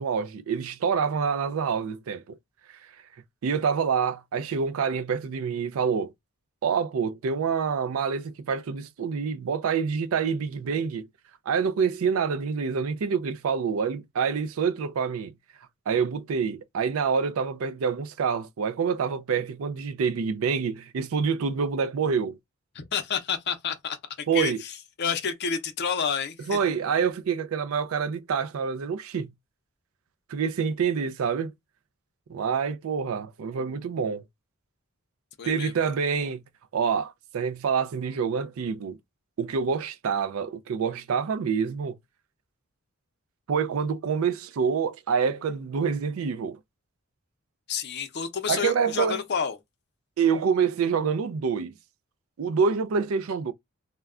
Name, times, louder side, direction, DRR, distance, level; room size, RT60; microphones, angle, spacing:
voice 1, 0.0-2.4 2.7-2.8 3.4-6.1 6.6-11.1 11.5-15.3 15.9-22.4 24.3-24.6 26.5-29.3 30.3-31.5 32.3-34.2 35.4-36.4 36.7-39.0 39.4-42.0 43.5-46.6 48.5-49.2 50.2-51.7 52.4-53.5, right 6 dB, 75° right, 0.4 m, -27 dB
voice 2, 22.7-26.6 35.4-35.9 47.7-49.6, left 6 dB, 55° left, 0.6 m, -30 dB
2.2 x 2.2 x 3.5 m
head